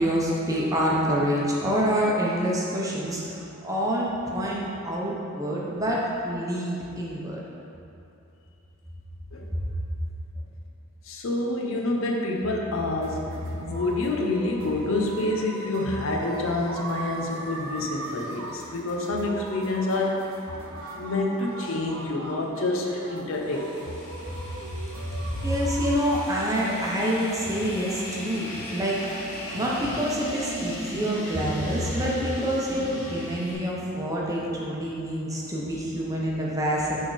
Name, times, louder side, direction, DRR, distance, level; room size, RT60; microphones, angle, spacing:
voice 1, 0.0-7.4 24.3-24.4 25.2-29.0 29.5-37.1, equal, 15° right, -5 dB, 0.9 m, -27 dB
voice 2, 11.1-20.3 20.9-23.9, left 2 dB, 70° left, 0 dB, 0.7 m, -27 dB
sound 1, 12.7-30.0, right 2 dB, 80° right, 0.7 m, -40 dB
sound 2, 23.4-33.5, left 1 dB, 35° left, 1.4 m, -39 dB
9.2 x 3.6 x 4.1 m, 2.8 s
head